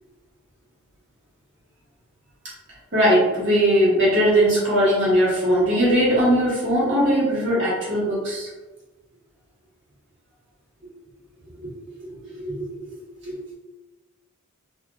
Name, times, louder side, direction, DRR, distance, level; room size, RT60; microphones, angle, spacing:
voice 1, 2.9-8.5 11.6-12.1 12.3-13.0 13.2-13.4, equal, 55° right, -7 dB, 1.2 m, -20 dB
2.8 x 2.4 x 2.3 m, 1.1 s
head